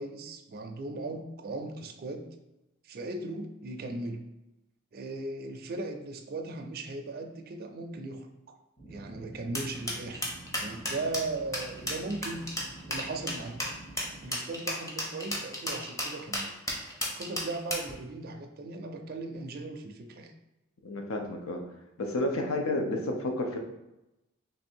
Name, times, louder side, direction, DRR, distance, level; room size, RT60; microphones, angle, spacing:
voice 1, 0.0-2.3 2.8-4.3 4.9-8.5 8.9-10.3 10.6-12.5 12.9-13.6 14.2-16.5 16.9-20.3, right 2 dB, 45° right, 4 dB, 0.4 m, -38 dB
sound 1, 8.8-14.3, right 2 dB, 30° left, 1.2 m, -48 dB
sound 2, 9.5-17.9, equal, 15° left, 0.7 m, -33 dB
voice 2, 20.8-21.6 22.0-23.6, left 1 dB, 75° left, 3 dB, 0.6 m, -31 dB
3.2 x 2.6 x 4.4 m, 0.94 s
head